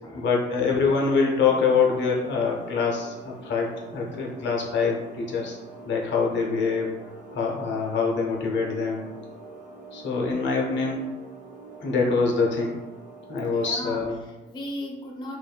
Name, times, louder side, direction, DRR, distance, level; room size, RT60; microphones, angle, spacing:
voice 1, 0.1-5.6 5.9-6.9 7.3-9.0 9.9-11.0 11.8-12.8 13.3-14.2, left 5 dB, 65° left, -2 dB, 0.6 m, -24 dB
sound 1, 0.8-13.7, right 2 dB, 40° right, 0.8 m, -45 dB
voice 2, 13.5-15.4, left 1 dB, 20° left, -1 dB, 0.4 m, -37 dB
2.5 x 2.2 x 2.2 m, 1.1 s
cardioid pair, 90°, 20 cm